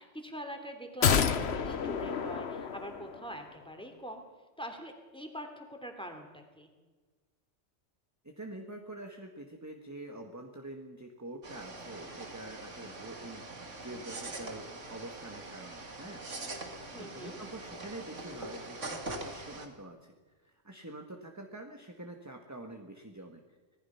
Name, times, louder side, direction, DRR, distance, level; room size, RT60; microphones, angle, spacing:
voice 1, 0.0-4.2 4.6-6.7 16.9-17.4, equal, 5° left, 4 dB, 3.0 m, -44 dB
sound 1, 1.0-3.4 3.7-3.8, left 7 dB, 60° left, 1.2 m, -29 dB
voice 2, 8.2-13.4 13.8-16.2 16.6-20.1 20.4-23.4, right 2 dB, 15° right, 3 dB, 1.6 m, -46 dB
sound 2, 11.4-19.7, right 2 dB, 75° right, 2.7 m, -43 dB
25.5 x 19.5 x 5.8 m, 1.3 s
omnidirectional pair, 1.3 m